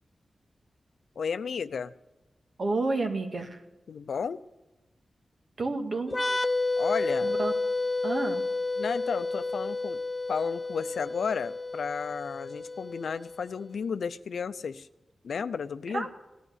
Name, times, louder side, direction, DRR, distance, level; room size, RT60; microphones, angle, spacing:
voice 1, 1.2-1.9 3.9-4.4 6.8-7.3 8.8-10.0 10.3-14.9 15.2-16.1, left 6 dB, 85° left, 13 dB, 0.5 m, -33 dB
voice 2, 2.6-3.6 5.6-6.1 7.2-7.5 8.0-8.4 15.9-16.1, right 3 dB, 60° right, 4 dB, 2.0 m, -30 dB
sound 1, 6.1-13.6, left 3 dB, 25° left, 0.9 m, -31 dB
17.0 x 11.0 x 7.3 m, 1.0 s
cardioid pair, 60°, 0 cm